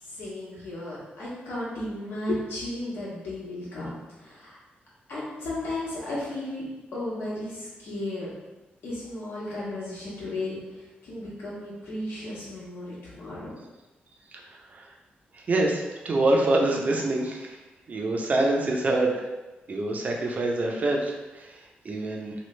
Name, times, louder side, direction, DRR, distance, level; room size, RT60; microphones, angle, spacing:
voice 1, 0.0-4.6 5.1-6.6 6.9-8.3 8.8-13.5, left 1 dB, 75° left, -7 dB, 1.4 m, -34 dB
voice 2, 14.3-14.9 15.3-17.6 17.9-19.3 19.7-22.3, right 2 dB, 45° right, 0 dB, 0.6 m, -26 dB
3.1 x 2.3 x 3.2 m, 1.1 s
cardioid pair, 95°, 4 cm